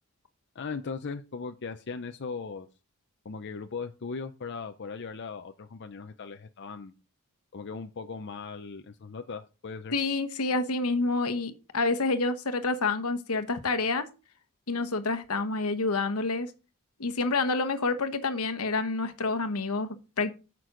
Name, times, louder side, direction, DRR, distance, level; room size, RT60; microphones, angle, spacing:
voice 1, 0.5-2.7 3.2-6.9 7.5-10.0, left 4 dB, 55° left, 0.6 m, -38 dB
voice 2, 9.9-14.1 14.7-16.5 17.0-20.3, left 3 dB, 80° left, 1.1 m, -28 dB
9.4 x 6.0 x 3.8 m
head